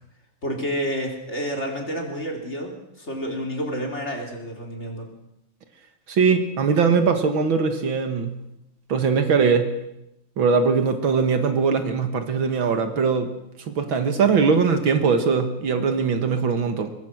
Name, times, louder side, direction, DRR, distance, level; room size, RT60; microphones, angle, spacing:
voice 1, 0.4-5.1, equal, 30° left, 1 dB, 4.0 m, -29 dB
voice 2, 6.1-8.4 8.9-9.8 10.4-13.3 13.7-16.9, right 5 dB, 70° right, 7 dB, 2.4 m, -21 dB
23.0 x 21.5 x 6.3 m, 0.83 s
omnidirectional pair, 2.3 m